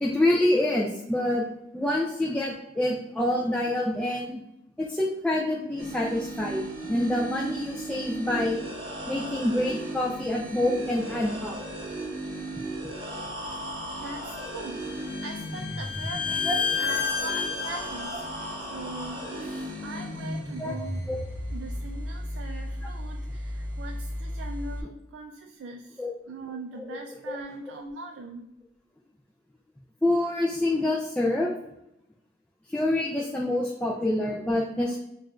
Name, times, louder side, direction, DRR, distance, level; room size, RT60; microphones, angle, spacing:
voice 1, 0.0-1.5 1.7-4.4 4.8-8.6 9.1-11.6 16.5-16.6 20.6-20.7 21.1-21.3 26.0-26.1 26.8-27.0 27.3-27.4 30.0-31.5 32.7-35.0, left 1 dB, 5° left, -3 dB, 0.3 m, -26 dB
sound 1, 5.8-24.8, right 1 dB, 30° right, 1.3 m, -35 dB
voice 2, 13.6-16.5 16.8-18.5 18.7-21.1 21.5-28.5, right 3 dB, 80° right, 3 dB, 0.3 m, -41 dB
Bowed string instrument, 14.4-18.2, left 6 dB, 45° left, 0.7 m, -30 dB
6.2 x 2.5 x 2.3 m, 0.84 s
head